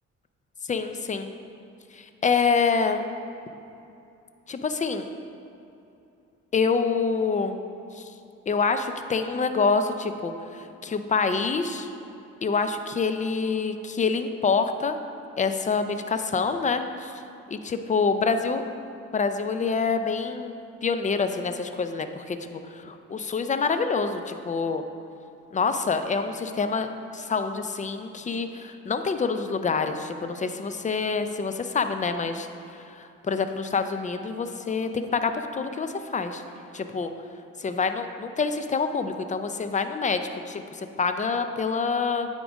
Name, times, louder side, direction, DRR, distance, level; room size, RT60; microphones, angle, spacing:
voice 1, 0.7-1.3 1.9-3.0 4.5-5.1 6.5-7.6 7.9-8.1 8.5-11.9 12.4-15.0 15.4-17.1 17.5-18.6 19.1-20.5 20.8-24.8 25.5-26.9 27.1-32.5 32.8-36.4 36.7-37.1 37.6-42.3, left 5 dB, 25° left, 8 dB, 0.5 m, -26 dB
9.0 x 3.7 x 4.9 m, 2.8 s
cardioid pair, 80°, 30 cm